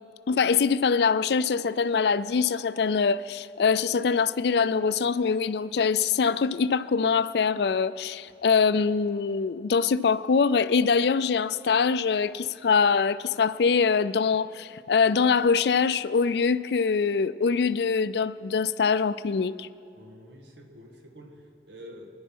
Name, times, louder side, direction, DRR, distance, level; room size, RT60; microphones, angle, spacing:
voice 1, 0.3-19.7, left 5 dB, 65° left, 0.4 m, -24 dB
voice 2, 19.9-22.1, equal, 70° right, 1.7 m, -47 dB
22.0 x 10.5 x 5.5 m
head